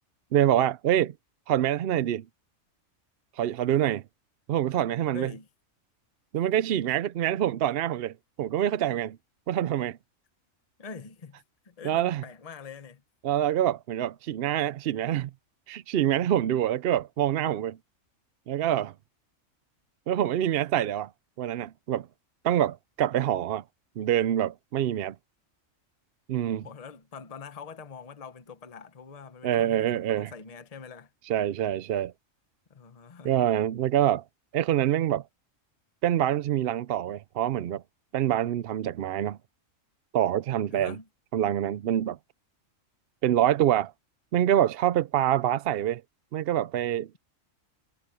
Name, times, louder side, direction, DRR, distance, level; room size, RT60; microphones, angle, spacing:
voice 1, 0.3-1.1 1.5-2.2 3.4-4.0 4.5-5.3 6.3-9.2 9.5-10.0 11.8-12.2 13.2-15.3 15.7-17.8 18.5-18.9 20.1-21.1 21.4-22.1 22.4-23.6 24.0-25.1 26.3-26.6 29.4-30.3 31.3-32.1 33.2-34.2 34.5-35.2 36.0-37.8 38.1-39.4 40.1-41.0 41.3-42.2 43.2-43.9 44.3-46.0 46.3-47.2, right 11 dB, 65° right, 0.6 m, -26 dB
voice 2, 5.1-5.5 10.8-13.0 26.3-31.1 32.7-33.4 40.7-41.1, left 6 dB, 30° left, 1.0 m, -44 dB
omnidirectional pair, 1.4 m